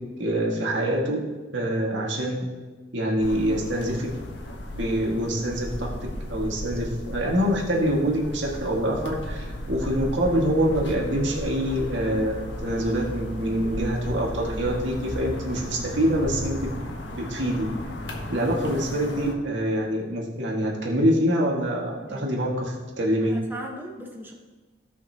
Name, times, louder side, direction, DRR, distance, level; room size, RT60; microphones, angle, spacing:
voice 1, 0.2-1.3 1.5-2.5 2.9-4.1 4.8-5.9 6.3-16.6 17.2-17.6 18.3-23.3, equal, 85° right, -2 dB, 2.0 m, -25 dB
sound 1, 3.2-19.3, equal, 75° left, 1.3 m, -35 dB
voice 2, 22.1-22.5 23.2-24.3, right 1 dB, 10° right, -1 dB, 1.3 m, -39 dB
17.0 x 5.8 x 3.0 m, 1.3 s
head